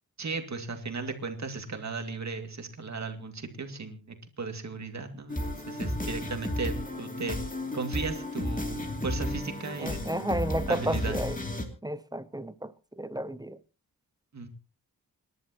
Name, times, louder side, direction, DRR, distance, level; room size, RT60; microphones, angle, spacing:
voice 1, 0.2-7.4 7.7-10.3 10.7-11.2 14.3-14.5, right 4 dB, 45° right, 2.4 m, -36 dB
sound 1, 5.3-11.6, left 1 dB, 20° left, 2.7 m, -33 dB
voice 2, 9.8-11.4 11.8-13.6, right 1 dB, 10° right, 0.7 m, -32 dB
27.5 x 11.0 x 3.0 m
wide cardioid pair, 110°, 37 cm